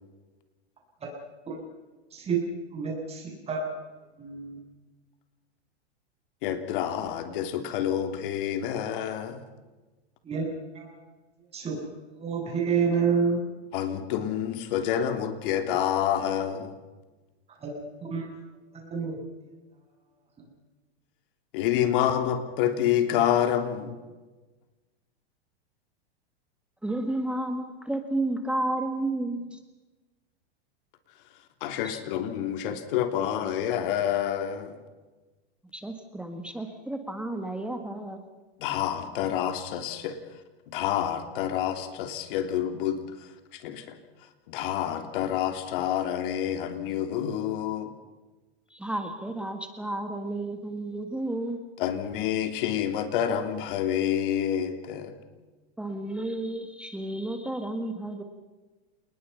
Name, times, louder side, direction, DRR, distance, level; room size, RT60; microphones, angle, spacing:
voice 1, 2.7-3.8 4.2-4.6 10.2-10.5 10.7-11.0 11.5-11.8 12.2-13.4 17.6-18.3 18.7-19.2, right 5 dB, 20° right, 0 dB, 7.9 m, -29 dB
voice 2, 6.4-9.4 13.7-16.7 21.5-24.0 31.6-34.8 38.6-40.2 40.7-43.0 43.5-44.0 44.5-47.9 51.8-55.1, left 10 dB, 55° left, 7 dB, 3.1 m, -28 dB
voice 3, 26.8-29.6 31.8-32.0 35.7-38.2 48.7-51.6 55.8-58.2, right 1 dB, 5° right, 6 dB, 1.7 m, -32 dB
28.5 x 20.5 x 5.8 m, 1.2 s
supercardioid pair, 145°, 32 cm